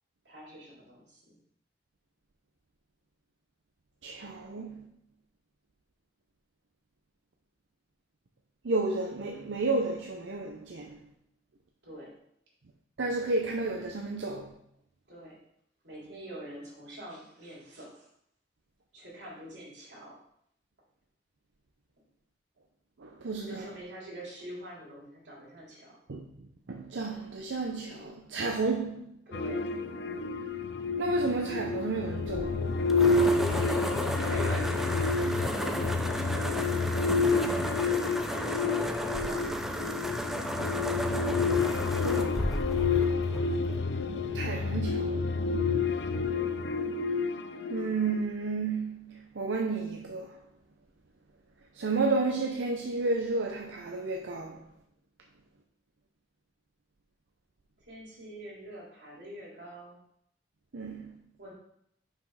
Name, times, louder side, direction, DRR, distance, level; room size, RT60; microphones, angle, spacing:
voice 1, 0.2-1.3 11.8-12.1 15.1-15.3 15.8-18.1 18.9-20.2 23.4-26.0 29.3-29.8 32.9-37.0 37.6-38.8 39.2-40.0 41.0-41.2 57.9-60.0 61.4-61.5, equal, 65° right, 3.2 m, -44 dB
voice 2, 4.0-4.9 8.6-11.0 13.0-14.5 23.0-23.7 26.1-26.3 26.7-29.1 31.0-32.6 42.0-42.5 44.3-45.3 47.7-50.4 51.7-54.6 60.7-61.2, right 3 dB, 85° right, 0.7 m, -32 dB
sound 1, 29.3-48.2, left 4 dB, 65° left, 0.5 m, -29 dB
sound 2, 32.2-44.0, equal, ahead, 0.4 m, -34 dB
5.7 x 5.4 x 4.8 m
head